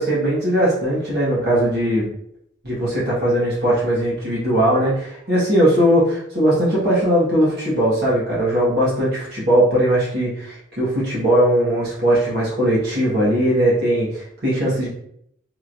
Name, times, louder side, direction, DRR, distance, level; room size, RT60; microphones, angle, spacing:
voice 1, 0.0-2.1 2.6-14.9, right 1 dB, 60° right, -7 dB, 1.2 m, -19 dB
3.1 x 2.9 x 2.5 m, 0.71 s
head